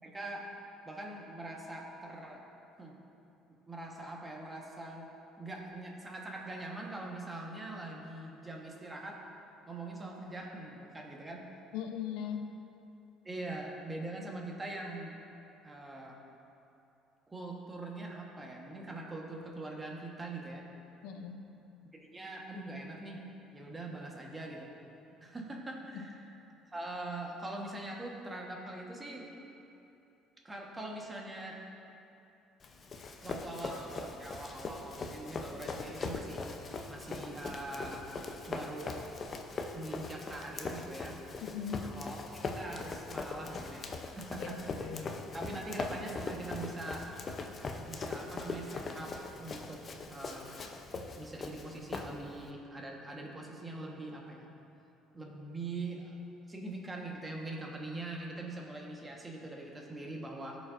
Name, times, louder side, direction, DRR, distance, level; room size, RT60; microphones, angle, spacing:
voice 1, 0.0-0.5 0.8-2.4 2.8-2.9 3.7-5.1 5.4-9.2 9.7-11.4 13.2-15.1 15.6-16.2 17.3-20.6 21.9-23.2 23.5-24.7 25.2-26.3 26.7-29.3 30.4-31.6 33.2-36.4 36.9-38.1 38.5-38.9 39.7-41.2 41.8-47.1 47.8-49.8 50.1-50.5 51.2-54.5 55.1-56.1 56.5-60.6, right 2 dB, 20° right, -1 dB, 1.3 m, -43 dB
voice 2, 11.7-12.5 21.0-21.5 25.9-26.1 41.4-41.9 44.4-45.2, left 8 dB, 85° left, 5 dB, 0.6 m, -40 dB
Run, 32.6-52.5, left 3 dB, 40° left, 0.6 m, -41 dB
14.0 x 5.2 x 2.6 m, 2.8 s
supercardioid pair, 95°, 0 cm